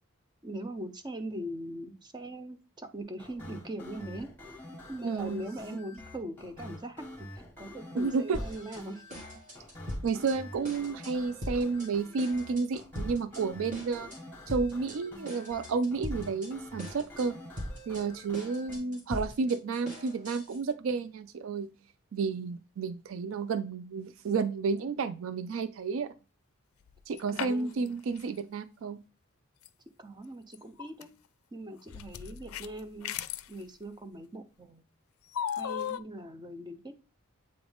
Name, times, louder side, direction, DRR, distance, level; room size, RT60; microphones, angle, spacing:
voice 1, 0.4-4.3 4.9-9.0 27.3-27.9 30.0-31.1 31.5-33.1 33.5-34.8 35.6-36.9, right 1 dB, 20° right, 8 dB, 0.6 m, -41 dB
sound 1, 3.2-18.8, left 1 dB, 10° left, 1.9 m, -47 dB
voice 2, 5.0-5.4 8.0-8.4 10.0-14.1 14.5-17.3 17.9-21.7 22.1-26.1 27.1-29.0, right 4 dB, 70° right, 11 dB, 0.4 m, -31 dB
sound 2, 8.3-8.8 9.1-10.4 10.6-11.1 11.4-11.9 12.2-13.4 13.7-14.2 14.5-15.0 15.3-16.5 16.8-17.3 17.6-20.6, equal, 40° right, 1.7 m, -40 dB
sound 3, 26.9-27.9 28.2-28.3 29.7-29.8 30.5-31.0 31.9-33.5 35.3-36.0, left 9 dB, 85° left, 0.4 m, -36 dB
7.8 x 3.8 x 3.4 m, 0.33 s
head